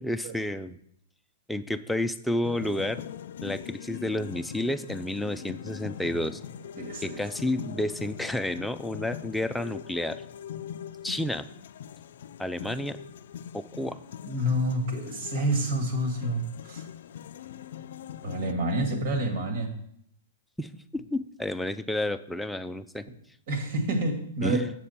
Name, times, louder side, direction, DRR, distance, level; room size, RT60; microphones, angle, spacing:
voice 1, 0.0-0.8 1.5-3.0 3.4-6.4 7.0-10.2 11.0-11.5 12.4-13.0 13.5-14.0 20.6-23.0 24.4-24.7, left 1 dB, ahead, 8 dB, 0.4 m, -30 dB
sound 1, 2.4-18.5, left 9 dB, 70° left, 0.3 m, -42 dB
voice 2, 6.8-7.2 14.2-16.8 18.2-19.7 23.5-24.6, right 1 dB, 60° right, 4 dB, 2.0 m, -28 dB
7.5 x 6.7 x 4.3 m, 0.68 s
hypercardioid pair, 140°, 0 cm